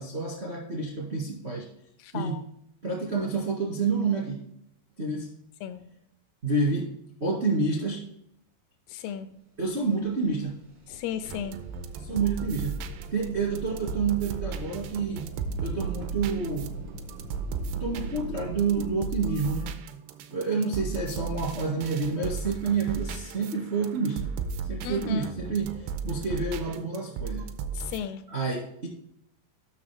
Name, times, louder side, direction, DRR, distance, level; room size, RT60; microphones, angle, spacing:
voice 1, 0.0-1.7 2.1-2.4 2.8-4.4 5.0-5.3 6.4-6.9 7.2-8.0 9.6-10.6 12.0-12.8 13.1-15.3 15.6-16.8 17.7-19.7 20.3-24.3 24.7-27.5 27.9-28.9, right 4 dB, 50° right, -3 dB, 0.7 m, -29 dB
voice 2, 8.9-9.3 10.9-11.6 24.8-25.3 27.8-28.2, left 8 dB, 80° left, 11 dB, 2.7 m, -34 dB
sound 1, 10.0-10.1 10.3-18.9, right 4 dB, 70° right, 1.1 m, -41 dB
sound 2, 11.2-28.0, right 5 dB, 85° right, 2.7 m, -36 dB
9.8 x 6.1 x 3.4 m, 0.76 s
omnidirectional pair, 4.9 m